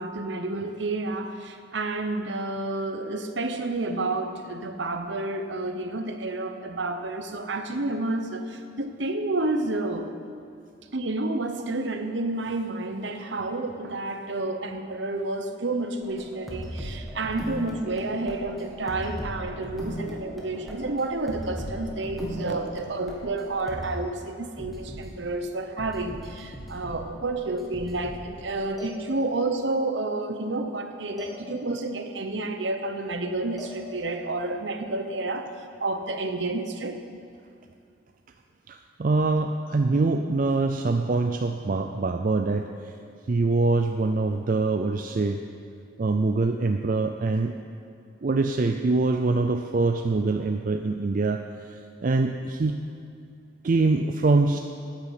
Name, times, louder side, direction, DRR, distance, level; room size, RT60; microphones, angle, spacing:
voice 1, 0.0-10.1 10.9-35.5 35.8-37.0, right 2 dB, 65° right, 7 dB, 0.9 m, -30 dB
sound 1, 16.0-24.0 24.6-25.1 25.8-27.2 27.6-28.4 28.8-29.6 31.2-32.0 33.6-34.4, equal, ahead, 1.8 m, -39 dB
voice 2, 38.7-42.7 43.3-45.4 46.0-47.5 48.2-51.4 52.0-52.8 53.6-54.6, right 3 dB, 45° right, 5 dB, 0.4 m, -24 dB
9.7 x 9.0 x 8.2 m, 2.4 s
head